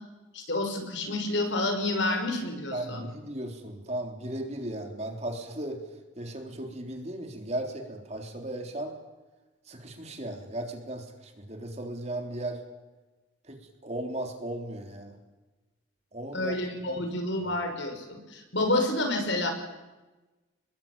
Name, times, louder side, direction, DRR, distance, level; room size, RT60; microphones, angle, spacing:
voice 1, 0.3-3.0 16.3-19.5, left 2 dB, 65° left, 4 dB, 6.1 m, -29 dB
voice 2, 2.7-5.8 6.2-9.0 9.7-12.6 13.5-13.6 13.8-15.2 16.1-16.6 16.9-17.0 17.4-17.5, right 1 dB, 35° right, 3 dB, 3.6 m, -36 dB
29.0 x 21.5 x 8.9 m, 1.1 s
head